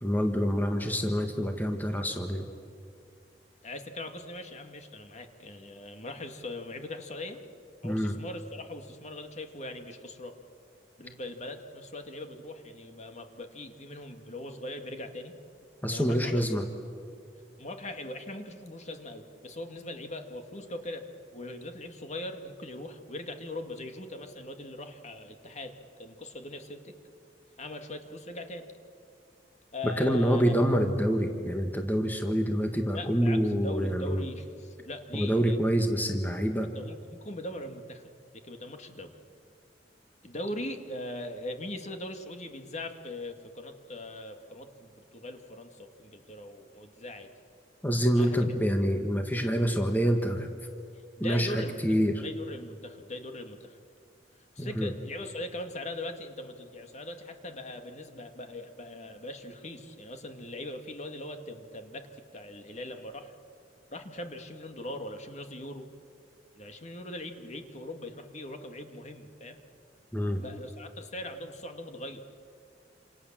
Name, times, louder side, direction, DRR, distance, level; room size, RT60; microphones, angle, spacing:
voice 1, 0.0-2.5 7.8-8.1 15.8-16.6 29.8-34.2 35.1-36.7 47.8-50.5 51.2-52.2 54.6-54.9 70.1-70.4, equal, 10° left, 4 dB, 1.6 m, -26 dB
voice 2, 3.6-7.4 7.8-10.4 11.0-15.3 15.9-16.4 17.6-21.1 21.3-26.9 27.6-28.7 29.7-30.6 32.9-35.6 36.7-39.1 40.2-47.3 48.1-48.4 51.2-51.8 52.2-53.8 54.6-63.3 63.9-65.8 66.6-69.6 70.4-72.2, left 1 dB, 40° left, 6 dB, 2.2 m, -40 dB
28.0 x 27.5 x 7.5 m, 2.4 s
head